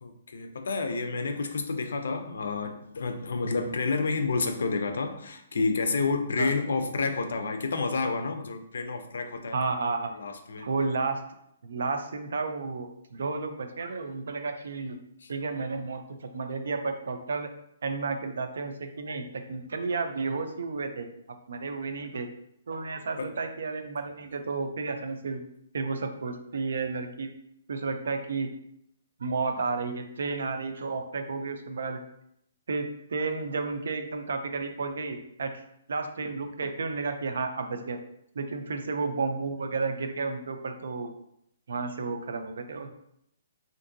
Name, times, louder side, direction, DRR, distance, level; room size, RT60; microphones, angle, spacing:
voice 1, 0.0-9.6 10.1-10.7 15.2-15.3 23.2-23.3, left 4 dB, 70° left, 7 dB, 0.4 m, -29 dB
voice 2, 9.5-10.1 10.6-11.2 11.6-15.0 15.3-17.5 17.8-21.1 21.5-22.3 22.7-25.4 25.7-27.3 27.7-28.5 29.2-32.0 32.7-32.8 33.1-35.5 35.9-38.0 38.3-41.1 41.7-42.9, right 4 dB, 65° right, 6 dB, 0.4 m, -32 dB
3.5 x 2.5 x 2.6 m, 0.74 s
hypercardioid pair, 180°, 0 cm